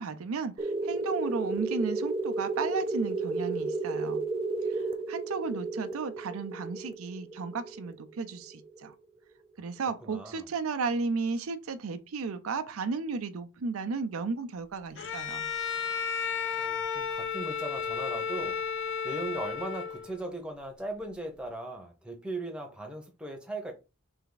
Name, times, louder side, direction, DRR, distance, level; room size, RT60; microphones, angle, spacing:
voice 1, 0.0-4.2 4.7-8.9 9.6-15.5, right 4 dB, 85° right, 0.5 m, -34 dB
sound 1, 0.6-8.9, right 3 dB, 25° right, 0.3 m, -33 dB
voice 2, 10.0-10.4 16.6-18.6 19.0-23.7, right 2 dB, 5° right, 0.8 m, -38 dB
Bowed string instrument, 15.0-20.2, left 6 dB, 55° left, 0.4 m, -33 dB
3.4 x 3.3 x 3.9 m
head